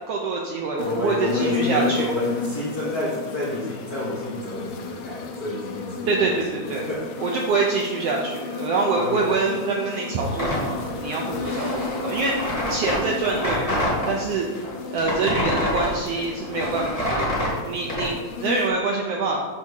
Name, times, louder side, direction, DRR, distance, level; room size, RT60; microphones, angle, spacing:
voice 1, 0.1-2.3 6.1-6.9 7.2-14.5 14.9-17.3 17.6-19.4, right 3 dB, 75° right, -1 dB, 1.5 m, -25 dB
sound 1, 0.8-18.7, left 4 dB, 80° left, 1.2 m, -33 dB
voice 2, 0.8-6.4 6.8-7.0 9.0-9.3, left 1 dB, 50° left, -6 dB, 1.2 m, -30 dB
sound 2, 10.3-14.1 14.5-18.1, left 1 dB, 15° left, 1.4 m, -27 dB
8.2 x 3.6 x 6.4 m, 1.5 s
omnidirectional pair, 3.5 m